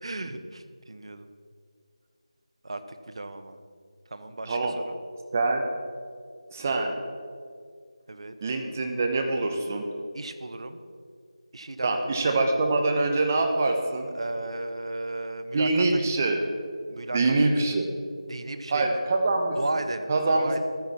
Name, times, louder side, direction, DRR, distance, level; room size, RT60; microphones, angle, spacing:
voice 1, 0.0-1.3 2.6-3.6 4.1-5.0 8.1-8.3 10.1-10.8 11.5-12.3 14.1-15.8 16.9-17.5 18.3-19.0 19.6-20.6, right 2 dB, 55° right, 9 dB, 0.8 m, -35 dB
voice 2, 5.3-5.6 6.5-6.9 8.4-9.8 11.8-14.1 15.5-16.4 17.1-17.9 18.7-19.6 20.1-20.5, right 2 dB, 25° right, 4 dB, 0.9 m, -24 dB
11.5 x 9.7 x 4.3 m, 2.2 s
figure-of-eight pair, 170°, 3 cm